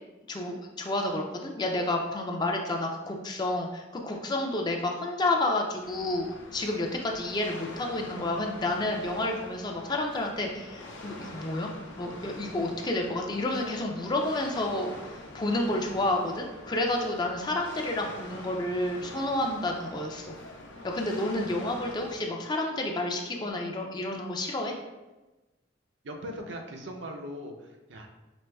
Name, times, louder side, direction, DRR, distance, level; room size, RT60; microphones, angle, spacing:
voice 1, 0.3-11.7 12.0-14.9 15.3-20.3 20.8-24.8, left 2 dB, 20° left, 1 dB, 0.4 m, -30 dB
sound 1, 5.8-22.2, left 1 dB, 80° left, 0.6 m, -45 dB
voice 2, 26.0-28.1, equal, 65° right, 3 dB, 0.5 m, -40 dB
5.2 x 3.0 x 2.2 m, 1.1 s
head